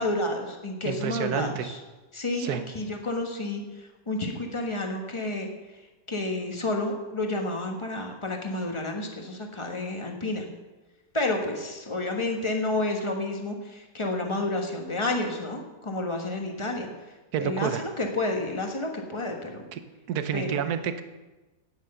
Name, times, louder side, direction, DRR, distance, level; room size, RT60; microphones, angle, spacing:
voice 1, 0.0-1.8 2.1-5.5 6.1-10.4 11.1-16.9 17.4-19.6 20.3-20.6, left 2 dB, 20° left, 2 dB, 1.3 m, -30 dB
voice 2, 0.8-1.7 2.4-2.6 17.3-17.8 19.7-19.8 20.1-21.0, right 9 dB, 75° right, 10 dB, 1.3 m, -29 dB
9.6 x 9.2 x 6.6 m, 1.2 s
omnidirectional pair, 1.7 m